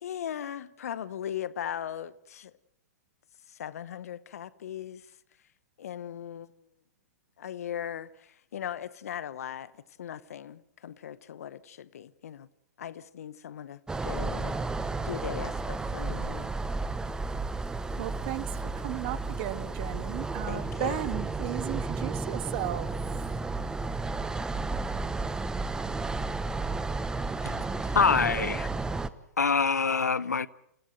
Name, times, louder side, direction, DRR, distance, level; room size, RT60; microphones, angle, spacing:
voice 1, 0.0-2.5 3.5-5.1 5.8-6.5 7.4-12.5 12.8-14.6 15.0-16.5 20.5-21.0, left 10 dB, 65° left, 1.2 m, -38 dB
sound 1, 13.9-29.1, right 3 dB, 10° right, 1.0 m, -32 dB
voice 2, 18.0-23.3 28.1-28.6, right 15 dB, 45° right, 1.7 m, -36 dB
voice 3, 27.9-28.7 29.4-30.5, left 5 dB, 85° left, 0.9 m, -25 dB
28.0 x 16.5 x 7.9 m
hypercardioid pair, 115°, 9 cm